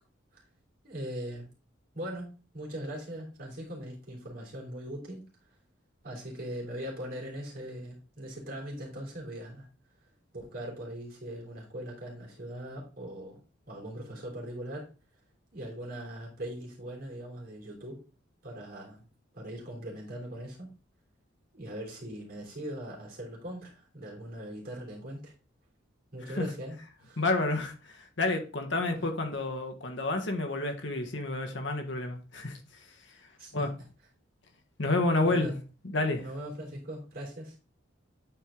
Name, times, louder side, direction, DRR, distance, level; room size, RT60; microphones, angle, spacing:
voice 1, 0.8-1.5 1.9-5.3 6.0-9.7 10.3-13.4 13.7-14.9 15.5-18.0 18.4-19.1 19.3-20.7 21.5-25.3 26.1-27.2 29.0-29.1 33.4-33.7 35.1-35.6 36.2-37.6, right 1 dB, 45° right, 3.4 m, -40 dB
voice 2, 27.2-32.6 33.5-33.7 34.8-35.5 35.8-36.2, left 2 dB, 65° left, 1.4 m, -29 dB
9.3 x 4.5 x 3.7 m
head